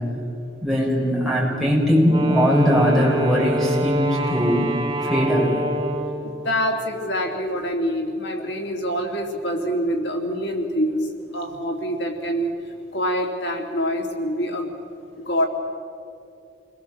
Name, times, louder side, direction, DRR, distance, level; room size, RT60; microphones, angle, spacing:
voice 1, 0.6-4.7 5.0-5.5, equal, ahead, -3 dB, 6.5 m, -20 dB
Wind instrument woodwind instrument, 2.1-6.4, equal, 20° right, 5.0 m, -26 dB
voice 2, 6.4-12.5 12.9-14.7 15.2-15.5, equal, 80° left, 2 dB, 3.0 m, -25 dB
29.5 x 21.5 x 7.7 m, 2.7 s
head